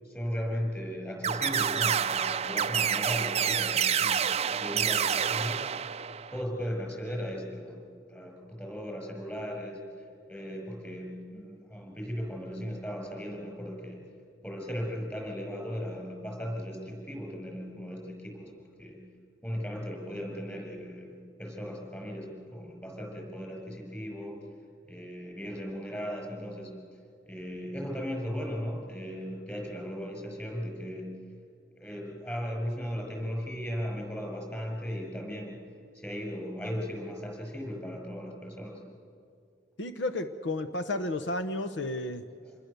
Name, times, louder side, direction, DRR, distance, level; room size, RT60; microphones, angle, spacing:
voice 1, 0.0-4.3 4.5-5.6 6.3-7.8 8.1-9.8 10.3-14.0 14.4-19.0 19.4-21.1 21.4-24.4 24.9-26.7 27.3-31.2 31.8-35.6 35.9-38.8 42.4-42.6, equal, 10° left, 1 dB, 6.1 m, -37 dB
sound 1, 1.2-6.4, right 8 dB, 35° right, 0.5 m, -28 dB
voice 2, 39.8-42.2, left 2 dB, 80° left, 9 dB, 1.0 m, -32 dB
27.5 x 21.0 x 6.9 m, 2.4 s
head